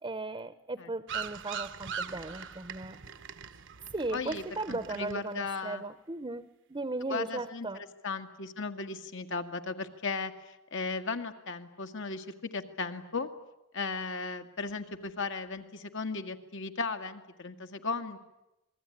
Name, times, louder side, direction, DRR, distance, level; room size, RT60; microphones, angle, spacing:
voice 1, 0.0-3.0 3.9-7.8, right 2 dB, 25° right, 0.9 m, -37 dB
sound 1, 1.1-5.5, right 6 dB, 60° right, 1.0 m, -41 dB
voice 2, 4.1-5.8 7.1-13.3 13.7-18.2, left 4 dB, 60° left, 2.0 m, -36 dB
27.5 x 21.0 x 10.0 m
head